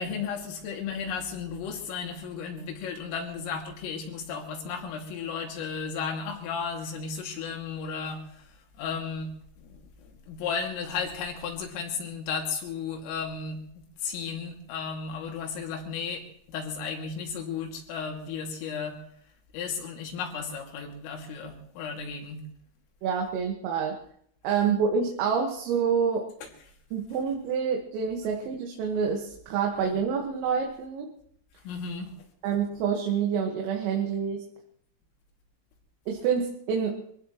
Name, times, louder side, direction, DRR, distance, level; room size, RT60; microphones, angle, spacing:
voice 1, 0.0-9.3 9.6-19.0 19.5-22.4 24.5-24.6 26.4-26.5 31.6-32.1, left 5 dB, 75° left, 2 dB, 5.0 m, -34 dB
voice 2, 23.0-24.0 24.4-26.3 26.9-31.1 32.4-34.4 36.1-37.0, right 6 dB, 80° right, 0 dB, 4.3 m, -27 dB
25.0 x 16.5 x 3.1 m, 0.67 s
omnidirectional pair, 6.0 m